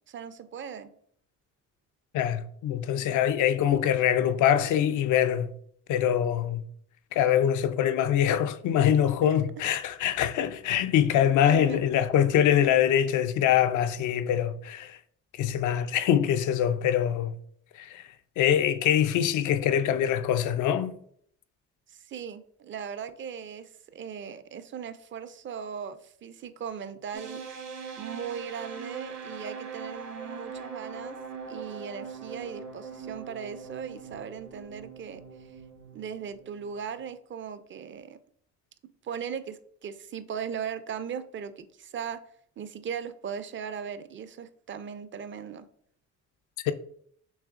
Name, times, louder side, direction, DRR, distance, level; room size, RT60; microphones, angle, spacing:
voice 1, 0.1-0.9 9.2-9.4 11.5-11.8 21.9-27.4 28.0-31.2 31.5-35.5 35.9-38.2 39.0-42.2 42.6-45.7, right 7 dB, 40° right, 0.5 m, -38 dB
voice 2, 2.1-5.5 5.9-6.6 7.1-15.0 15.4-17.3 17.8-18.0 18.4-20.9 46.6-46.7, left 10 dB, 80° left, 0.5 m, -24 dB
sound 1, 27.1-37.0, right 5 dB, 65° right, 1.3 m, -41 dB
6.3 x 3.2 x 2.5 m
cardioid pair, 90°, 30 cm